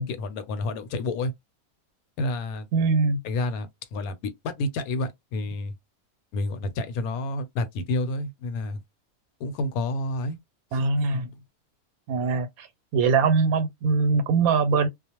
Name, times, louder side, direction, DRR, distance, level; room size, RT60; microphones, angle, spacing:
voice 1, 0.0-1.3 2.2-2.7 3.2-5.7 6.3-8.8 9.4-10.4 10.7-10.8, left 2 dB, 85° left, 1.1 m, -29 dB
voice 2, 2.7-3.2 10.7-11.3 12.1-12.7 12.9-14.9, right 4 dB, 85° right, 1.1 m, -22 dB
2.4 x 2.1 x 2.8 m
omnidirectional pair, 1.5 m